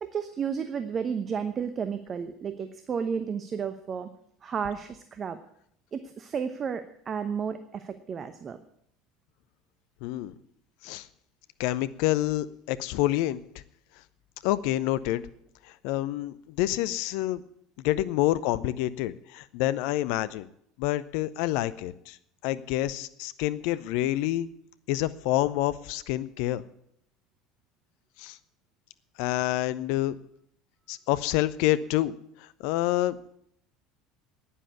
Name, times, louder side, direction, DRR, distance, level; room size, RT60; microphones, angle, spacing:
voice 1, 0.0-4.1 4.4-5.4 5.9-8.6, right 6 dB, 35° right, 10 dB, 0.9 m, -32 dB
voice 2, 10.0-10.3 10.8-11.1 11.6-13.4 14.4-15.2 15.8-17.4 17.8-20.5 20.8-22.2 22.4-24.5 24.9-26.6 28.2-28.4 29.2-30.2 30.9-32.1 32.6-33.2, left 15 dB, 60° left, 16 dB, 0.6 m, -27 dB
11.0 x 10.0 x 8.2 m, 0.71 s
figure-of-eight pair, 70°, 0 cm